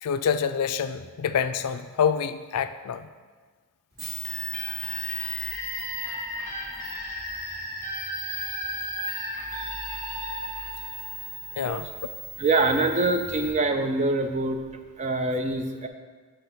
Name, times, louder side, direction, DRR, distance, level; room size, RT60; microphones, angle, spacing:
voice 1, 0.0-3.1 11.6-12.1, left 7 dB, 90° left, 11 dB, 0.4 m, -27 dB
sound 1, 3.9-13.5, right 3 dB, 55° right, 2.2 m, -38 dB
sound 2, 4.2-11.8, left 1 dB, 10° left, 1.5 m, -35 dB
voice 2, 12.4-14.6 15.0-15.9, right 2 dB, 30° right, 6 dB, 0.4 m, -24 dB
7.0 x 3.4 x 5.7 m, 1.4 s
head